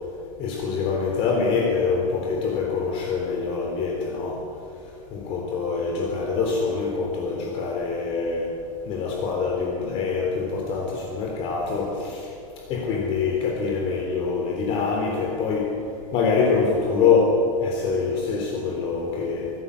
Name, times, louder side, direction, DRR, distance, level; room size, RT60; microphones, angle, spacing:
voice 1, 0.4-4.4 5.1-8.5 8.9-12.3 12.7-15.7 16.1-19.5, left 5 dB, 30° left, 0 dB, 3.6 m, -24 dB
26.5 x 20.0 x 8.4 m, 2.6 s
supercardioid pair, 180°, 19 cm